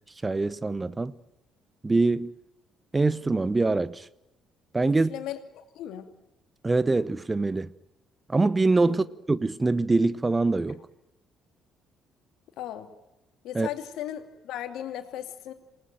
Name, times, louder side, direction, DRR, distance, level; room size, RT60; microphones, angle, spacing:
voice 1, 0.2-1.1 1.8-2.3 2.9-4.1 4.7-5.1 6.6-7.7 8.3-10.8 13.5-13.7, right 3 dB, 20° right, 1.0 m, -24 dB
voice 2, 4.9-6.1 8.8-9.1 12.6-12.9 13.4-15.5, left 11 dB, 60° left, 2.6 m, -37 dB
28.0 x 19.0 x 9.2 m
figure-of-eight pair, 45°, 0 cm